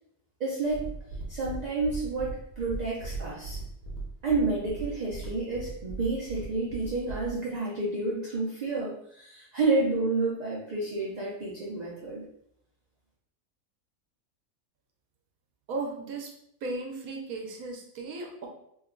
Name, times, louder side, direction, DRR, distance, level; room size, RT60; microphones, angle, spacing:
voice 1, 0.4-0.9 1.3-3.6 4.2-12.2, right 3 dB, 45° right, -5 dB, 0.5 m, -30 dB
sound 1, 0.7-7.4, right 3 dB, 65° left, 1.3 m, -39 dB
voice 2, 15.7-16.3 16.6-18.5, right 3 dB, 75° right, 1 dB, 1.1 m, -36 dB
3.1 x 2.2 x 3.7 m, 0.74 s
omnidirectional pair, 1.5 m